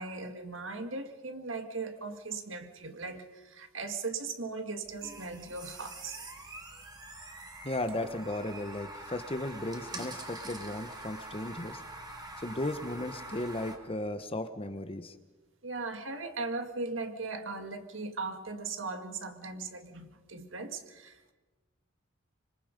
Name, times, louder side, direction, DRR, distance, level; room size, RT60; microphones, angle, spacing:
voice 1, 0.0-6.2 15.6-21.3, right 3 dB, 65° right, 6 dB, 2.0 m, -38 dB
sound 1, 4.9-13.8, right 2 dB, 20° right, 2.7 m, -45 dB
voice 2, 7.6-11.8 12.4-15.1, left 1 dB, 30° left, 9 dB, 1.1 m, -35 dB
25.5 x 25.5 x 5.3 m, 1.2 s
head